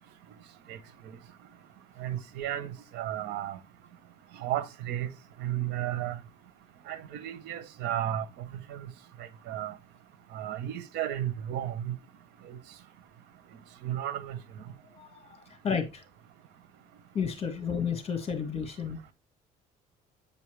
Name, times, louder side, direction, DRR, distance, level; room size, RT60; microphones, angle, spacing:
voice 1, 2.0-3.6 4.4-5.1 5.4-6.2 6.9-8.3 8.7-8.9 9.5-9.7 10.3-11.9 12.5-12.6 13.8-14.4, right 11 dB, 85° right, 0.9 m, -33 dB
voice 2, 14.9-16.0 17.1-19.0, left 6 dB, 35° left, 1.8 m, -32 dB
8.4 x 5.4 x 3.3 m
cardioid pair, 110°, 17 cm